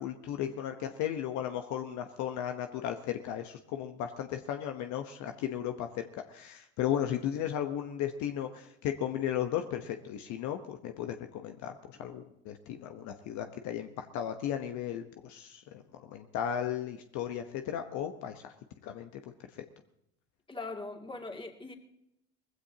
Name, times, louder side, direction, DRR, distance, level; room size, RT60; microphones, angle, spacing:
voice 1, 0.0-18.5 18.8-19.6, left 10 dB, 60° left, 6 dB, 1.1 m, -35 dB
voice 2, 20.5-21.7, left 3 dB, 15° left, 2 dB, 2.4 m, -41 dB
20.5 x 15.5 x 2.9 m, 0.79 s
hypercardioid pair, 65°, 32 cm